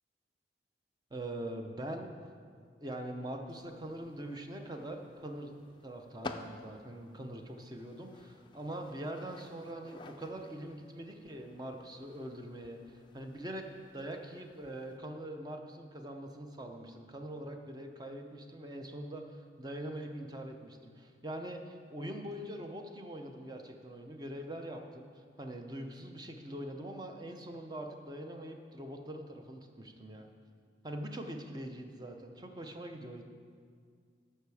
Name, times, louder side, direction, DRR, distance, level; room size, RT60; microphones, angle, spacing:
voice 1, 1.1-2.1 2.8-5.5 5.8-13.7 13.9-30.3 30.8-33.2, right 1 dB, 20° right, 4 dB, 0.7 m, -43 dB
sound 1, 3.5-15.0, left 2 dB, 25° left, 0.4 m, -52 dB
14.0 x 5.7 x 4.8 m, 2.1 s
head